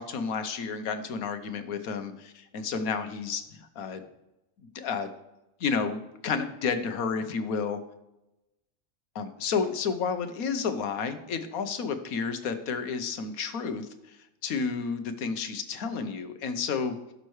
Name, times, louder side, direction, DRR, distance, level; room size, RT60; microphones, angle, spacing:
voice 1, 0.0-4.0 4.7-5.1 5.6-7.8 9.1-14.2 14.4-17.1, left 5 dB, 80° left, 9 dB, 1.3 m, -31 dB
16.5 x 6.7 x 3.2 m, 0.93 s
omnidirectional pair, 1.5 m